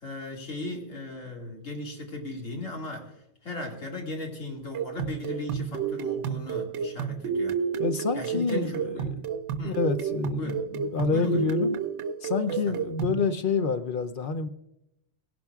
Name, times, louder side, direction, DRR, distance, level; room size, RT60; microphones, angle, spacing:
voice 1, 0.0-3.1 3.4-7.6 8.1-9.2 9.6-9.8 10.4-10.7 11.1-11.5 12.5-12.8, left 2 dB, 85° left, -1 dB, 2.6 m, -37 dB
sound 1, 4.7-13.2, right 7 dB, 70° right, 0.9 m, -31 dB
voice 2, 7.8-9.1 9.6-11.8 12.2-14.5, left 5 dB, 55° left, 9 dB, 0.7 m, -28 dB
18.0 x 11.5 x 2.3 m, 0.86 s
omnidirectional pair, 1.3 m